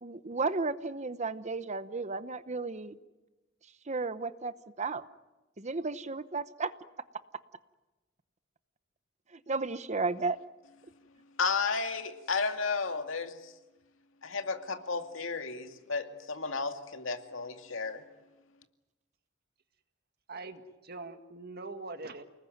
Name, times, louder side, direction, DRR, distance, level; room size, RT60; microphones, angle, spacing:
voice 1, 0.0-3.0 3.9-5.0 5.6-6.7 9.3-10.4, right 3 dB, 35° right, 13 dB, 0.9 m, -33 dB
voice 2, 11.4-13.5 14.2-18.0, left 4 dB, 80° left, 6 dB, 2.3 m, -33 dB
voice 3, 20.3-22.2, right 3 dB, 50° right, 8 dB, 1.9 m, -43 dB
29.5 x 20.0 x 9.5 m, 1.1 s
head